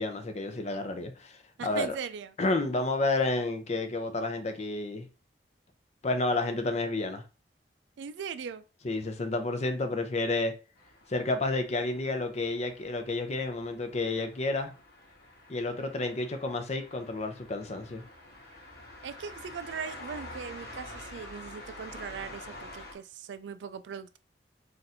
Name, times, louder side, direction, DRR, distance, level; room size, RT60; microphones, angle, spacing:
voice 1, 0.0-2.0 2.4-5.1 6.0-7.2 8.8-10.5 11.1-14.7 15.5-18.0, left 2 dB, 40° left, 0.5 m, -30 dB
voice 2, 1.6-2.3 8.0-8.6 19.0-24.2, right 6 dB, 90° right, 0.3 m, -40 dB
sound 1, 10.8-22.9, left 1 dB, 60° left, 1.1 m, -48 dB
2.6 x 2.5 x 4.1 m
head